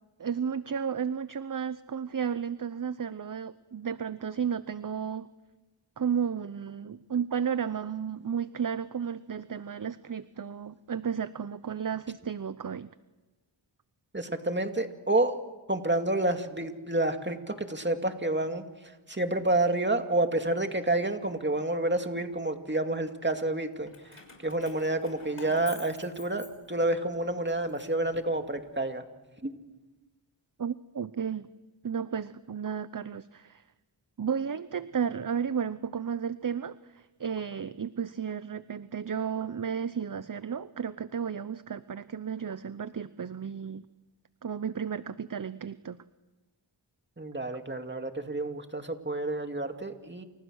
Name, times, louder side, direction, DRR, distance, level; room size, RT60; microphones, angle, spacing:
voice 1, 0.2-5.3 6.0-12.9 30.6-31.5 31.8-33.6 34.2-43.8 44.4-46.0, right 7 dB, 45° right, 14 dB, 0.8 m, -33 dB
voice 2, 14.1-15.4 15.7-29.0 29.4-29.5 47.2-50.2, right 2 dB, 25° right, 5 dB, 2.4 m, -29 dB
Keys jangling, 23.9-27.0 27.5-28.8, left 4 dB, 90° left, 6.2 m, -49 dB
29.0 x 28.5 x 6.4 m, 1.2 s
wide cardioid pair, 65°, 48 cm